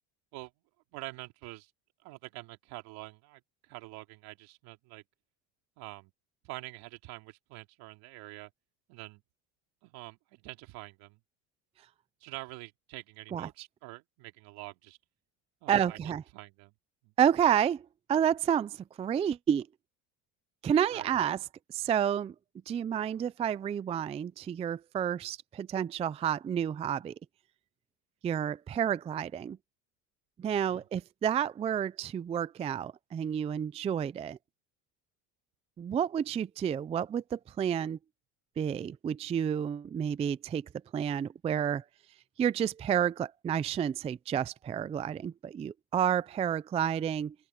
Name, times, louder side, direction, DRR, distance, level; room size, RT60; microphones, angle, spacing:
voice 1, 0.9-1.7 2.0-5.0 5.8-6.1 6.4-8.5 8.9-9.2 9.8-11.2 12.2-15.0 15.6-16.0 16.3-16.7 17.0-17.1 20.9-21.1 30.7-30.9, right 22 dB, 70° right, 2.7 m, -46 dB
voice 2, 15.7-16.2 17.2-19.7 20.6-21.4 21.7-22.3 22.7-27.1 28.2-29.6 30.4-34.4 35.8-38.0 38.6-40.7 40.9-41.8 42.4-47.3, right 8 dB, 15° right, 0.3 m, -30 dB
open air
supercardioid pair, 120°, 39 cm